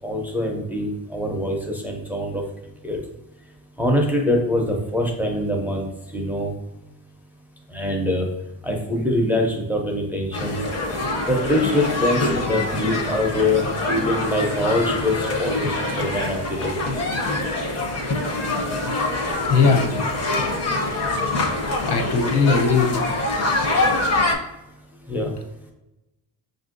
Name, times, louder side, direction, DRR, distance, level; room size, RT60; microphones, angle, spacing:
voice 1, 0.0-2.4 2.8-3.0 3.8-6.5 7.7-8.3 8.6-10.6 11.3-16.8 25.1-25.3, left 1 dB, 5° right, 0 dB, 0.4 m, -24 dB
sound 1, 10.3-24.3, left 2 dB, 40° left, 0.7 m, -24 dB
voice 2, 19.5-19.9 21.8-23.1, left 5 dB, 80° left, 3 dB, 0.7 m, -19 dB
5.5 x 2.6 x 2.5 m, 0.96 s
cardioid pair, 140°, 40 cm